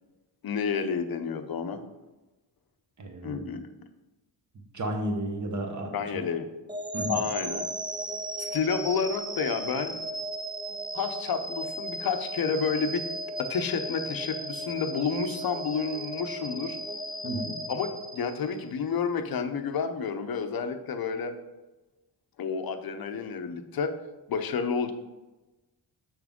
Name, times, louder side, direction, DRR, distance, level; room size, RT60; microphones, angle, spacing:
voice 1, 0.4-1.8 3.2-3.6 5.9-6.5 7.1-7.7 8.4-10.0 10.9-13.0 13.4-16.8 17.7-21.3 22.4-23.9 24.3-24.9, left 5 dB, 55° left, 8 dB, 0.7 m, -30 dB
voice 2, 3.0-3.5 4.7-5.9 6.9-7.2 17.2-17.6, right 1 dB, 40° right, 3 dB, 1.1 m, -32 dB
sound 1, 6.7-18.8, right 1 dB, 10° right, 0.3 m, -36 dB
7.1 x 6.0 x 3.6 m, 1.1 s
wide cardioid pair, 165°, 44 cm